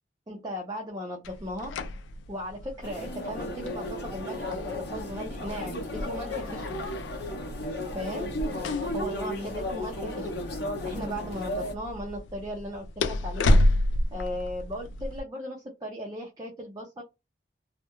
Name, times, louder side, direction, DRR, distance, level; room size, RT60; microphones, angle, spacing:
voice 1, 0.3-1.7 2.3-6.8 7.9-8.3 8.9-10.3 10.8-13.6 14.1-17.0, equal, 20° right, -1 dB, 0.4 m, -37 dB
sound 1, 1.2-15.2, left 1 dB, 90° left, 0.3 m, -31 dB
sound 2, 2.8-11.7, left 1 dB, 65° left, 0.7 m, -34 dB
2.2 x 2.1 x 2.9 m, 0.24 s
head